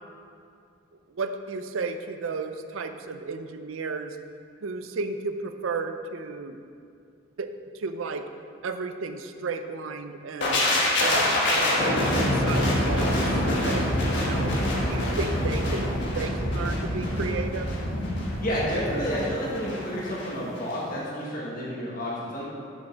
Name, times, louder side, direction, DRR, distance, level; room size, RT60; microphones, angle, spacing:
voice 1, 1.1-4.2 4.6-6.6 7.4-7.5 7.7-8.3 8.6-10.7 11.0-13.2 13.6-14.5 14.9-17.8, right 4 dB, 90° right, 8 dB, 0.5 m, -33 dB
sound 1, 10.4-20.3 20.6-20.8, left 1 dB, 60° left, 1.5 m, -25 dB
voice 2, 18.4-22.4, equal, 45° left, -6 dB, 1.3 m, -30 dB
6.8 x 5.2 x 6.2 m, 2.4 s
head